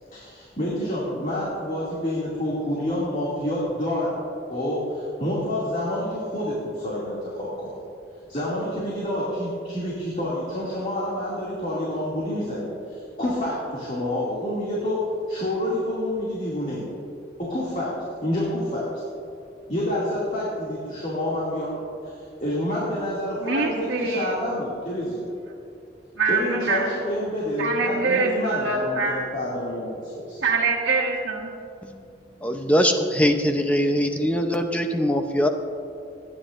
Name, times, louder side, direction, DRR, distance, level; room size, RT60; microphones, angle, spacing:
voice 1, 0.1-4.1 4.5-7.7 8.3-15.0 15.3-16.9 17.4-17.9 18.2-18.9 19.7-25.3 26.3-30.4, left 1 dB, 40° left, -7 dB, 2.5 m, -28 dB
voice 2, 23.4-24.4 26.2-26.9 27.6-29.2 30.4-31.5, right 4 dB, 75° right, -7 dB, 1.5 m, -24 dB
voice 3, 32.4-35.5, equal, 10° left, 4 dB, 0.7 m, -22 dB
27.5 x 10.0 x 2.6 m, 2.6 s
head